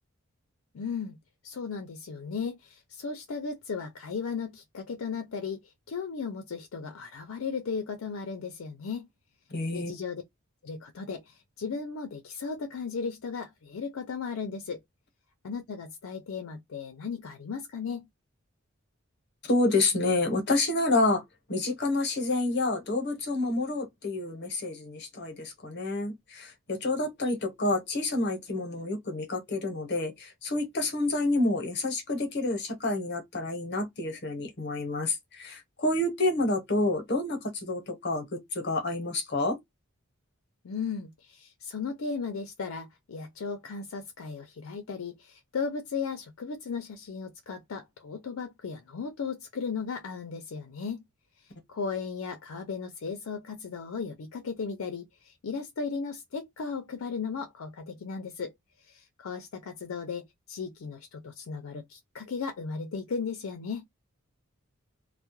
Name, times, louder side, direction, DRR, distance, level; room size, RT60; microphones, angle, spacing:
voice 1, 0.7-1.2 1.4-5.6 5.9-9.1 9.7-10.2 10.6-14.8 15.4-18.1 40.6-51.0 51.7-58.5 58.9-63.8, left 5 dB, 85° left, 0.5 m, -36 dB
voice 2, 9.5-9.9 19.5-21.2 21.5-39.6, left 2 dB, 55° left, 0.9 m, -28 dB
2.2 x 2.1 x 2.9 m
head